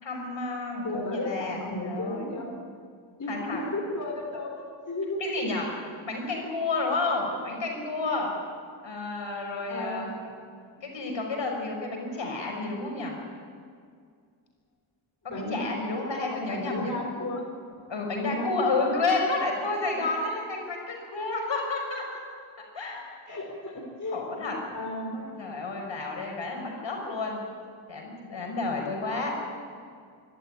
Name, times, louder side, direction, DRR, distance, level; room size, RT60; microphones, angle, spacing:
voice 1, 0.0-2.3 3.3-3.6 5.2-5.7 6.0-8.3 8.8-10.1 10.8-13.2 15.2-16.9 17.9-22.2 22.7-23.1 24.1-24.5 25.1-27.4 27.9-29.3, left 3 dB, 65° left, 1 dB, 6.2 m, -31 dB
voice 2, 0.8-2.5 3.2-5.2 9.7-10.4 15.3-17.5 18.1-18.9 23.3-24.2 24.7-25.1, left 2 dB, 40° left, -1 dB, 4.6 m, -34 dB
24.5 x 13.5 x 9.9 m, 2.1 s
cardioid pair, 80°, 48 cm